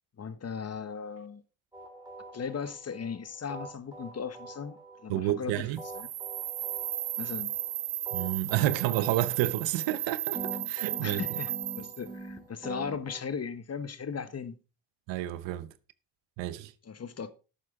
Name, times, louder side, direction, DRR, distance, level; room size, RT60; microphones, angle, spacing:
voice 1, 0.2-1.4 2.3-5.7 5.9-6.1 7.2-7.5 11.0-14.6 16.9-17.3, left 6 dB, 35° left, 1.1 m, -37 dB
sound 1, 1.7-3.2 3.5-5.4 5.8-7.7 8.1-10.0 10.3-13.2, right 2 dB, 10° right, 3.0 m, -44 dB
voice 2, 5.1-5.8 8.1-11.2 15.1-15.7 16.4-16.7, right 14 dB, 85° right, 0.9 m, -30 dB
sound 2, 5.8-12.1, right 13 dB, 45° right, 0.6 m, -35 dB
11.5 x 8.9 x 3.7 m
cardioid pair, 80°, 43 cm